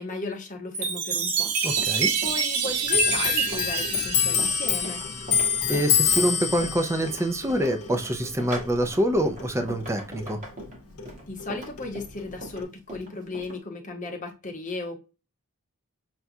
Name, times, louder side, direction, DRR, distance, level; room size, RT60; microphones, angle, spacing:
voice 1, 0.0-5.1 11.3-15.0, left 2 dB, 35° left, 0.9 m, -36 dB
Chime, 0.7-5.4, right 6 dB, 90° right, 0.8 m, -27 dB
Run, 1.4-13.6, right 1 dB, 35° right, 1.3 m, -41 dB
voice 2, 1.6-2.1 5.7-10.4, equal, 10° right, 0.4 m, -25 dB
Clock, 2.9-9.9 10.2-11.5 11.8-12.6, left 7 dB, 80° left, 0.7 m, -27 dB
5.9 x 2.3 x 2.6 m
head